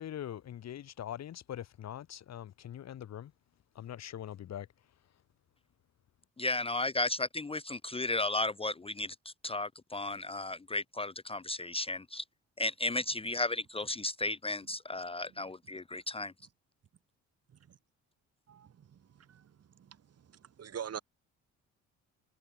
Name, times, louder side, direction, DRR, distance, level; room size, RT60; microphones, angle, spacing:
voice 1, 0.0-3.3 3.7-4.9, left 10 dB, 60° left, 1.4 m, -43 dB
voice 2, 6.4-12.2 12.6-16.3, left 2 dB, 20° left, 0.8 m, -34 dB
voice 3, 18.5-21.0, right 8 dB, 55° right, 3.0 m, -46 dB
cardioid pair, 90°, 30 cm